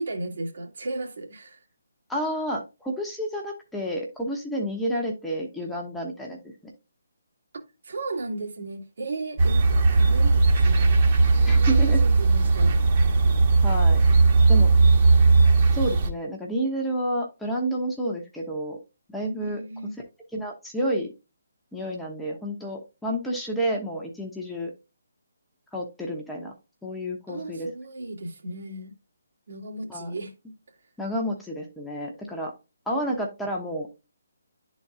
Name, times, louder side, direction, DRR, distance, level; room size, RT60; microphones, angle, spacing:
voice 1, 0.0-1.6 7.8-11.0 11.3-13.3 19.4-20.0 27.3-28.9 29.5-30.3 32.9-33.1, right 2 dB, 55° right, 1.9 m, -35 dB
voice 2, 2.1-6.4 6.6-6.7 11.5-12.0 13.6-14.0 14.5-14.7 15.7-18.8 19.1-19.9 20.3-21.1 21.7-24.7 25.7-26.5 26.8-27.7 29.9-30.1 31.0-32.5 32.9-33.9, right 1 dB, 5° left, 1.0 m, -30 dB
sound 1, 9.4-16.1, right 3 dB, 35° right, 1.4 m, -18 dB
11.0 x 4.1 x 2.4 m
figure-of-eight pair, 140°, 0 cm